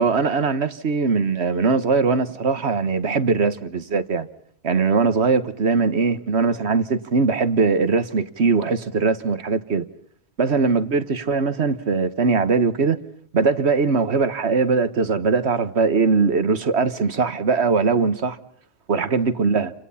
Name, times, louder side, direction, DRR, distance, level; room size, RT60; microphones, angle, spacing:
voice 1, 0.0-4.3 4.6-9.9 10.4-13.0 13.3-18.4 18.9-19.7, right 4 dB, 75° right, 1.6 m, -21 dB
30.0 x 27.0 x 5.7 m
omnidirectional pair, 1.1 m